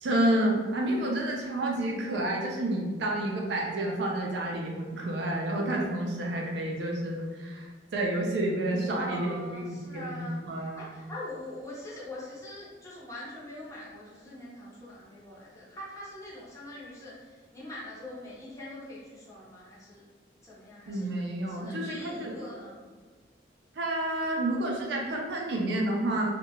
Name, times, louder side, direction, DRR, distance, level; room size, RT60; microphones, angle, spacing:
voice 1, 0.0-10.9 20.9-22.3 23.8-26.3, right 1 dB, 65° right, -1 dB, 0.4 m, -30 dB
voice 2, 8.9-10.4 10.8-20.0 20.4-21.1 21.5-22.8, left 1 dB, 15° left, -7 dB, 0.5 m, -43 dB
2.7 x 2.1 x 2.8 m, 1.4 s
head